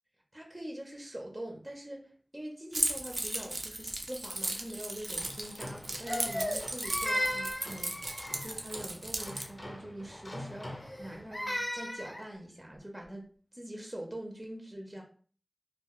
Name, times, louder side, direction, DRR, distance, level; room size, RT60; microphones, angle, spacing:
voice 1, 0.3-13.2 13.5-15.0, right 1 dB, 20° right, 1 dB, 0.7 m, -44 dB
Keys jangling, 2.7-9.5, right 2 dB, 65° right, 0.4 m, -36 dB
sound 1, 4.9-11.6, left 1 dB, 55° left, 0.9 m, -47 dB
Crying sobbing, 6.1-8.6 10.8-12.3, equal, 30° left, 0.5 m, -35 dB
2.3 x 2.3 x 3.0 m, 0.42 s
wide cardioid pair, 50°, 0 cm